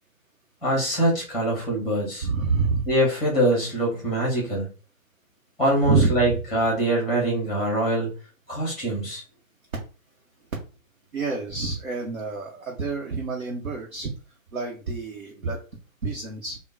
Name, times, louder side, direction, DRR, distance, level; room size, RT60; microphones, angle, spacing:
voice 1, 0.6-2.3 2.9-4.7 5.6-8.1 8.5-9.2, right 1 dB, ahead, -2 dB, 1.0 m, -23 dB
voice 2, 2.2-2.9 5.8-6.3 11.1-14.1 14.5-15.6 16.0-16.6, right 4 dB, 70° right, -2 dB, 0.9 m, -27 dB
3.5 x 2.1 x 2.6 m, 0.35 s
figure-of-eight pair, 130°, 41 cm